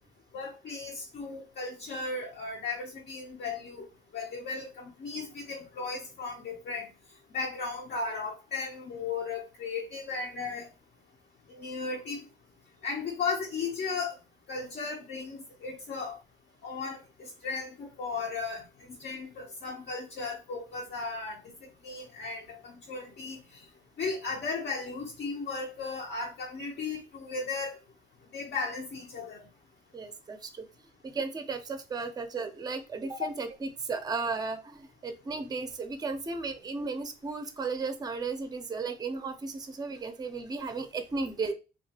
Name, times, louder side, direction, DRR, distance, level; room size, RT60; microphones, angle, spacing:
voice 1, 0.3-3.9 4.1-6.9 7.3-10.7 11.6-12.2 12.8-14.2 14.5-16.2 16.6-18.6 19.0-21.4 21.8-23.4 24.0-27.7 28.3-29.4 33.2-33.3, left 4 dB, 55° left, 0.7 m, -35 dB
voice 2, 29.9-30.7 31.0-41.5, right 4 dB, 20° right, 0.5 m, -35 dB
2.7 x 2.4 x 2.7 m
cardioid pair, 90°, 20 cm